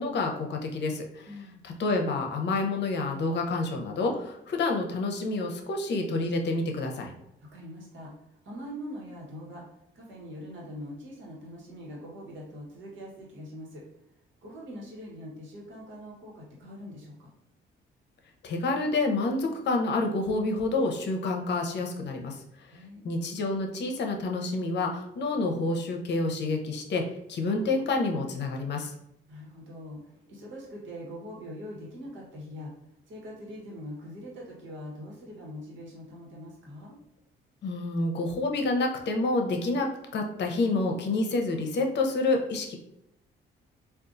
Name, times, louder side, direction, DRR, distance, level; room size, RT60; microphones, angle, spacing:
voice 1, 0.0-1.3 1.6-7.1 18.4-22.4 23.0-28.9 37.6-42.8, left 2 dB, 60° left, 2 dB, 0.7 m, -28 dB
voice 2, 1.3-1.6 7.5-9.6 9.9-13.8 14.4-17.3 22.7-23.1 29.3-32.7 33.1-37.0, equal, 70° right, -3 dB, 1.2 m, -43 dB
3.6 x 2.4 x 2.5 m, 0.79 s
cardioid pair, 90°, 20 cm